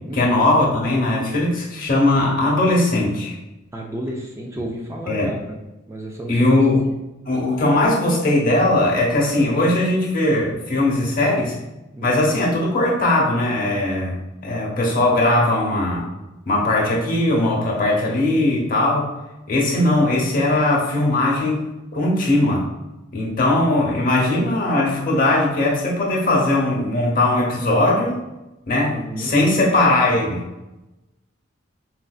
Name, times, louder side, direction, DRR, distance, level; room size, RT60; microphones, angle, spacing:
voice 1, 0.1-3.4 5.1-5.3 6.3-6.8 7.3-11.5 12.0-14.2 14.4-16.1 16.5-19.1 19.5-22.6 23.1-28.2 28.7-30.4, left 2 dB, 45° left, -2 dB, 0.8 m, -19 dB
voice 2, 3.7-5.6 5.9-6.6 6.9-7.0 11.9-12.3 28.9-29.4, right 1 dB, 15° right, 0 dB, 0.3 m, -32 dB
4.2 x 2.6 x 2.3 m, 0.99 s
head